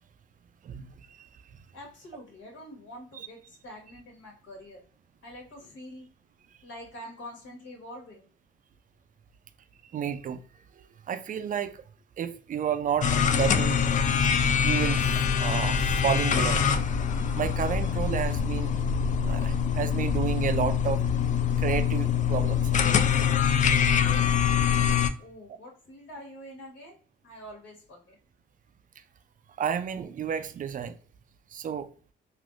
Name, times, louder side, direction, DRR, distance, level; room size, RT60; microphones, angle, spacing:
voice 1, 0.6-1.6 3.1-3.3 9.8-10.4 10.7-11.8 12.2-13.8 14.2-14.3 14.6-15.0 15.4-16.7 17.1-18.7 19.2-21.0 21.6-22.9 29.6-31.0 31.5-31.9, right 8 dB, 40° right, 0.4 m, -31 dB
voice 2, 1.7-4.8 5.2-6.1 6.6-8.3 25.2-27.0 27.2-28.2, equal, 75° left, 1.5 m, -45 dB
sound 1, 13.0-25.1, left 7 dB, 40° left, 0.4 m, -24 dB
3.3 x 2.6 x 2.5 m
cardioid pair, 90°, 20 cm